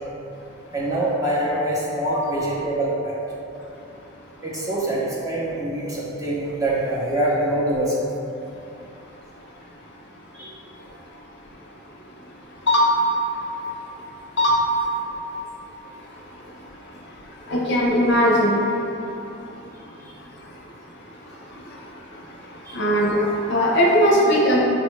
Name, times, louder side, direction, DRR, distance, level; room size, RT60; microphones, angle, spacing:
voice 1, 0.7-3.2 4.4-8.1 10.3-10.6 20.0-20.1 22.6-22.8, right 1 dB, 15° right, -6 dB, 0.5 m, -24 dB
voice 2, 17.5-18.6 22.7-24.6, equal, 50° left, -3 dB, 0.5 m, -19 dB
6.1 x 2.2 x 3.0 m, 2.8 s
head